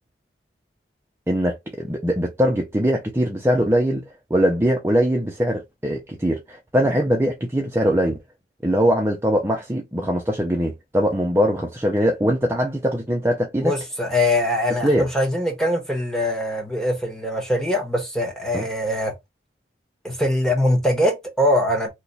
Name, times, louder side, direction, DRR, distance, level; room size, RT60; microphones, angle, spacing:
voice 1, 1.3-4.0 4.3-8.2 8.6-13.7 14.8-15.1 18.5-18.6, equal, 15° right, 0.5 m, -21 dB
voice 2, 13.6-19.1 20.0-21.9, left 1 dB, 5° left, 1.1 m, -22 dB
3.0 x 2.2 x 4.0 m
head